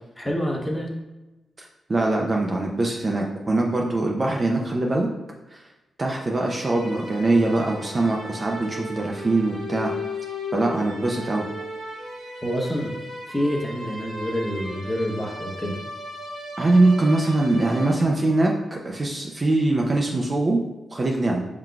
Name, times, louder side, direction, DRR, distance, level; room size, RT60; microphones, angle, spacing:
voice 1, 0.2-1.0 12.4-12.9 13.3-15.8, equal, 10° left, 0 dB, 0.8 m, -27 dB
voice 2, 1.6-5.1 5.5-5.6 6.0-9.9 10.5-11.5 16.6-20.6 20.9-21.5, right 2 dB, 25° right, 0 dB, 0.4 m, -22 dB
sound 1, 6.3-18.4, left 1 dB, 75° right, 1.3 m, -36 dB
6.0 x 3.8 x 2.3 m, 1.1 s
wide cardioid pair, 135°, 0 cm